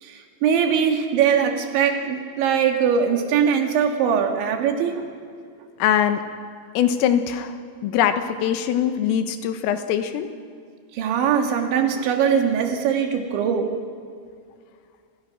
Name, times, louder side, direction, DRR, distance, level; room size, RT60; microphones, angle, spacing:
voice 1, 0.0-5.1 10.9-13.7, right 7 dB, 70° right, 3 dB, 4.4 m, -21 dB
voice 2, 5.8-6.2 6.8-7.6 7.8-10.3, left 9 dB, 90° left, 8 dB, 4.0 m, -22 dB
30.0 x 26.0 x 6.1 m, 2.2 s
omnidirectional pair, 5.8 m